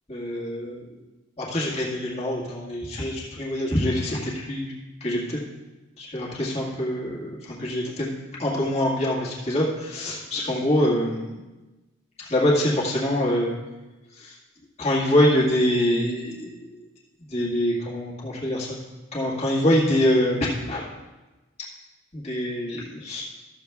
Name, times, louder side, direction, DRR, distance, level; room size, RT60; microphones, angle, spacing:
voice 1, 0.1-0.9 1.4-4.7 5.0-5.4 6.0-11.3 12.3-13.5 14.2-14.3 14.8-16.7 17.3-18.8 19.1-20.9 22.1-23.2, left 1 dB, 30° left, -6 dB, 1.9 m, -24 dB
13.0 x 7.2 x 3.5 m, 1.1 s
head